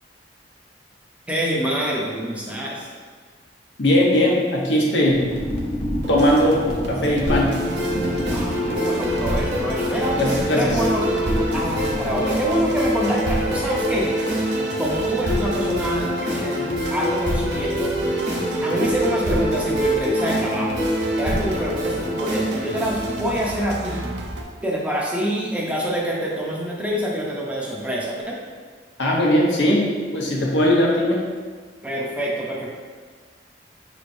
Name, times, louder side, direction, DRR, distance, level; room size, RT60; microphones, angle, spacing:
voice 1, 1.3-2.9 8.3-10.2 10.6-11.0 11.5-14.3 14.8-17.9 18.2-20.8 21.2-24.1 24.6-28.4 31.8-32.7, equal, 5° right, -4 dB, 0.5 m, -26 dB
voice 2, 3.8-5.2 6.1-7.5 10.1-10.7 29.0-31.2, left 1 dB, 80° left, -3 dB, 0.8 m, -19 dB
sound 1, 5.1-12.6, equal, 35° left, 0.7 m, -31 dB
sound 2, 6.0-24.4, right 1 dB, 65° right, 0.5 m, -35 dB
sound 3, 7.3-23.3, equal, 90° right, 1.2 m, -24 dB
5.2 x 3.1 x 2.6 m, 1.6 s
head